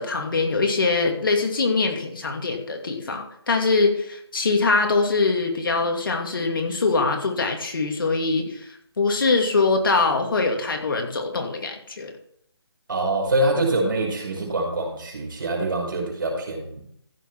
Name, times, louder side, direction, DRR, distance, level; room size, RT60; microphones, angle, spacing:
voice 1, 0.0-8.6 9.0-12.1, left 3 dB, 55° left, 3 dB, 2.5 m, -23 dB
voice 2, 12.9-16.8, right 1 dB, 50° right, 0 dB, 5.6 m, -25 dB
14.5 x 6.8 x 4.7 m, 0.68 s
hypercardioid pair, 170°, 14 cm